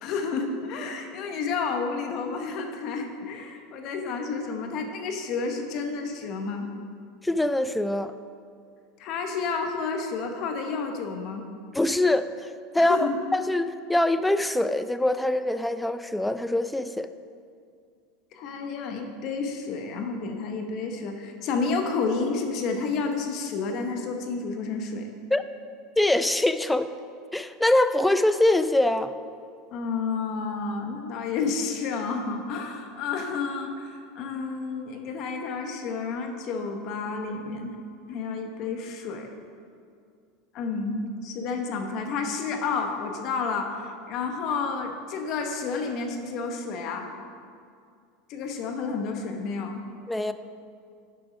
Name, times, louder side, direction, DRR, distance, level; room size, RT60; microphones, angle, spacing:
voice 1, 0.0-6.7 9.0-11.4 12.8-13.2 18.3-25.1 29.7-37.8 38.1-39.3 40.5-47.1 48.3-49.8, left 4 dB, 50° left, 4 dB, 0.9 m, -30 dB
voice 2, 7.2-8.1 11.7-17.1 25.3-25.4 26.0-26.9 27.3-29.1 50.1-50.3, left 1 dB, 5° left, 11 dB, 0.3 m, -24 dB
7.0 x 6.1 x 5.0 m, 2.3 s
supercardioid pair, 115°, 0 cm